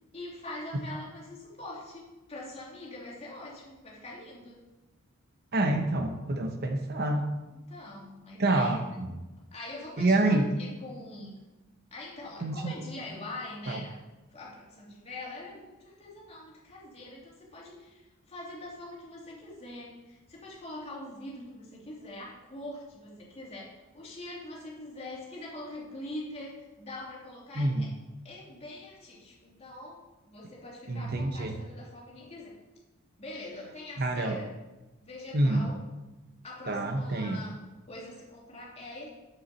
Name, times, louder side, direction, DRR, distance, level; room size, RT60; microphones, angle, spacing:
voice 1, 0.1-4.6 7.7-8.8 9.5-11.4 11.9-14.0 14.3-27.9 28.2-32.6 33.2-34.5 35.0-35.8 36.4-37.6 37.9-39.1, left 2 dB, 30° left, -4 dB, 2.6 m, -43 dB
voice 2, 5.5-7.3 8.4-8.8 10.0-10.5 12.4-12.8 13.7-13.8 27.6-27.9 30.9-31.6 34.0-34.4 35.3-35.7 36.7-37.4, right 2 dB, 45° right, 5 dB, 0.8 m, -27 dB
7.1 x 7.0 x 7.0 m, 1.1 s
head